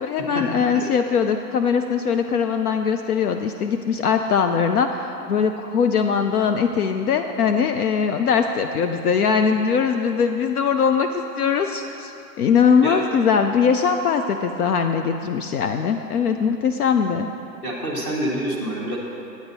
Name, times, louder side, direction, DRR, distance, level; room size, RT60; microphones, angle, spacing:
voice 1, 0.0-12.1 12.4-17.3, left 6 dB, 65° left, 6 dB, 0.6 m, -21 dB
voice 2, 17.6-19.0, right 1 dB, 20° left, -3 dB, 1.0 m, -27 dB
9.6 x 9.2 x 4.1 m, 2.8 s
hypercardioid pair, 165°, 50 cm